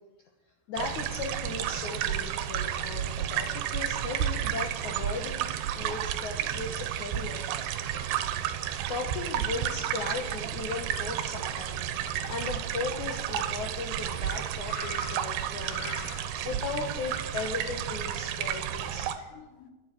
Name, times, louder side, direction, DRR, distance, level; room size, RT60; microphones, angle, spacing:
voice 1, 0.7-7.9 8.9-16.0 16.4-19.1, left 4 dB, 65° left, 1 dB, 2.1 m, -37 dB
sound 1, 0.8-19.2, right 10 dB, 80° right, 2.8 m, -32 dB
voice 2, 14.7-15.2 15.7-16.5 19.2-19.7, left 9 dB, 85° left, 8 dB, 3.3 m, -44 dB
12.5 x 9.5 x 9.0 m, 1.2 s
omnidirectional pair, 4.8 m